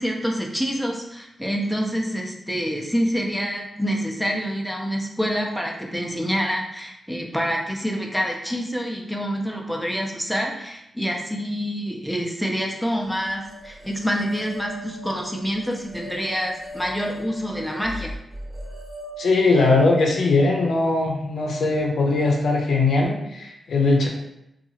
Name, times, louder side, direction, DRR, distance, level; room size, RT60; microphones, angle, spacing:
voice 1, 0.0-18.1, equal, ahead, 0 dB, 0.4 m, -27 dB
sound 1, 13.1-22.3, equal, 40° right, 1.0 m, -40 dB
voice 2, 19.2-24.1, left 3 dB, 80° left, 0 dB, 0.5 m, -20 dB
2.8 x 2.3 x 2.7 m, 0.85 s
cardioid pair, 85°, 0 cm